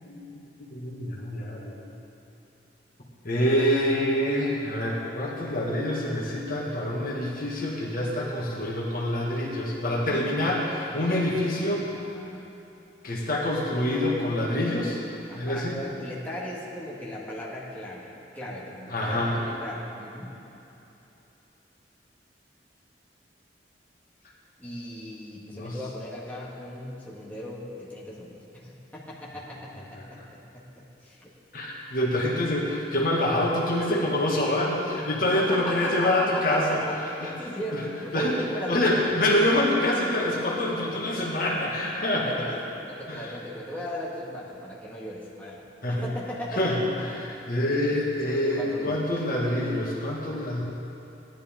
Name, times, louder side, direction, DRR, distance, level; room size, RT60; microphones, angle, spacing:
voice 1, 0.7-1.8 3.2-11.9 13.0-15.0 15.3-15.8 18.9-19.4 25.5-25.8 31.5-36.8 37.2-37.3 37.7-37.9 38.1-38.4 38.7-42.6 43.1-43.3 45.8-46.1 46.6-47.1 47.5-50.6, left 1 dB, 55° left, -3 dB, 1.8 m, -26 dB
voice 2, 10.1-10.4 12.1-12.5 15.3-20.4 24.6-30.2 30.5-31.3 35.3-39.2 42.1-42.6 42.9-45.6 45.9-46.9 47.9-48.0 48.6-49.0, equal, 10° left, -7 dB, 1.9 m, -37 dB
17.0 x 11.0 x 3.8 m, 3.0 s
head